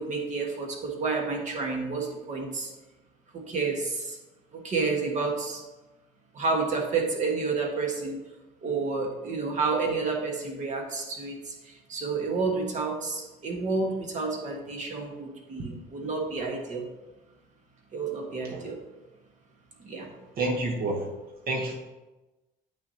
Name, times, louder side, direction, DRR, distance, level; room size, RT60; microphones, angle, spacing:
voice 1, 0.0-2.7 3.3-4.2 4.5-5.6 6.3-8.2 8.6-11.5 11.9-16.8 17.9-18.8 19.8-20.1, right 4 dB, 45° right, 1 dB, 1.6 m, -30 dB
voice 2, 20.4-21.1 21.5-21.7, right 2 dB, 60° right, 2 dB, 1.2 m, -28 dB
8.5 x 6.0 x 2.9 m, 1.1 s
cardioid pair, 110°, 17 cm